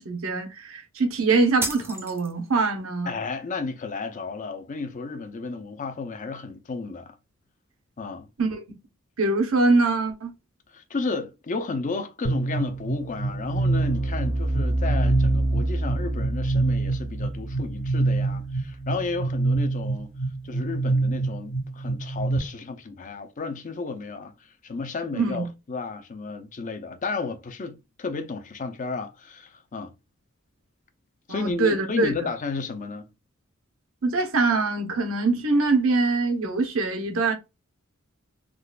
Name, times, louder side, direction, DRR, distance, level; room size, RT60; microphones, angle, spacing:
voice 1, 0.0-3.2 8.4-8.6 9.2-10.3 25.1-25.5 31.3-32.1 34.0-37.3, right 3 dB, 75° right, 0.8 m, -23 dB
sound 1, 1.6-2.6, right 2 dB, 10° right, 0.6 m, -32 dB
voice 2, 3.1-7.2 8.0-8.3 10.7-20.1 20.4-29.9 31.3-33.1, left 4 dB, 40° left, 0.5 m, -33 dB
sound 2, 12.2-22.4, right 2 dB, 60° left, 1.5 m, -25 dB
3.7 x 2.4 x 2.3 m
head